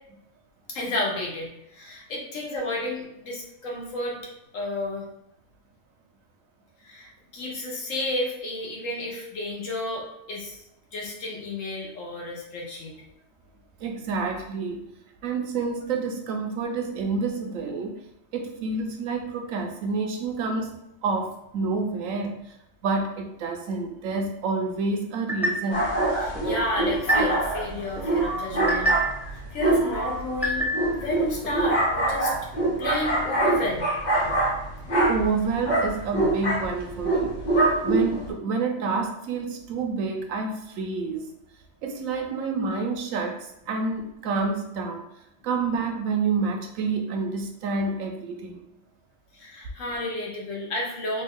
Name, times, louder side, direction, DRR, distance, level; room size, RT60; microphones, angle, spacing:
voice 1, 0.7-4.2 4.5-5.0 6.8-10.6 10.9-12.9 26.2-29.0 29.3-32.3 32.8-33.8 49.3-51.2, left 1 dB, 75° left, -2 dB, 1.3 m, -32 dB
voice 2, 13.8-14.8 15.2-18.0 18.3-20.8 21.0-22.5 22.8-25.9 35.1-37.3 37.8-41.3 41.8-45.1 45.4-48.6, right 4 dB, 80° right, 3 dB, 1.0 m, -28 dB
sound 1, 25.3-25.9 26.3-27.6 28.0-29.3 29.7-31.0 31.4-31.9, right 1 dB, ahead, 0.5 m, -29 dB
sound 2, 25.7-38.3, right 2 dB, 40° left, 0.9 m, -25 dB
3.4 x 2.3 x 3.5 m, 0.80 s
omnidirectional pair, 1.4 m